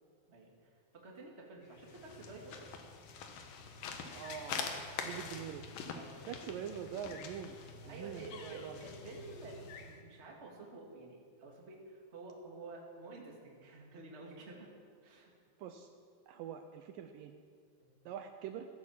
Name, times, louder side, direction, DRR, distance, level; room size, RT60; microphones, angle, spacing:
voice 1, 0.3-2.6 5.9-6.5 7.9-14.7 15.0-15.3 16.3-16.4 17.8-17.9, right 3 dB, 25° right, -1 dB, 1.8 m, -50 dB
sound 1, 1.7-10.0, left 5 dB, 75° left, 2.9 m, -45 dB
voice 2, 4.1-5.6 6.3-7.6 7.8-8.8 15.6-15.9 16.3-17.3 18.1-18.7, right 9 dB, 75° right, 7 dB, 2.2 m, -44 dB
15.5 x 10.5 x 7.3 m, 2.1 s
omnidirectional pair, 4.3 m